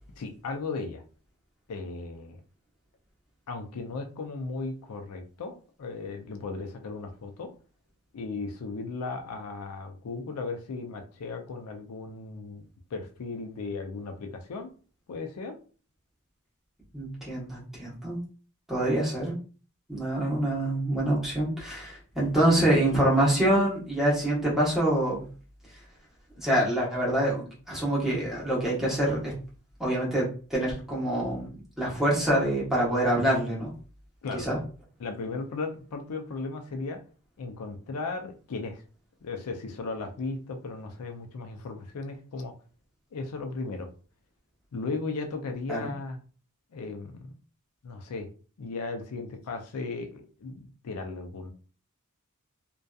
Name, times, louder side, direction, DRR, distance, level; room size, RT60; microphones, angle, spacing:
voice 1, 0.2-1.0 1.7-2.4 3.5-7.5 8.1-12.6 12.9-14.7 15.1-15.6 34.2-34.5 35.0-37.0 37.4-38.8 39.2-42.5 43.1-43.9 44.7-46.2 46.7-47.3 47.8-48.3 48.6-51.5, left 3 dB, 85° left, 5 dB, 0.5 m, -36 dB
voice 2, 16.9-18.2 18.7-19.3 19.9-25.3 26.4-29.3 29.8-31.5 31.8-33.7 34.3-34.6 45.7-45.9, right 1 dB, ahead, -6 dB, 1.0 m, -26 dB
2.6 x 2.3 x 2.3 m, 0.38 s
head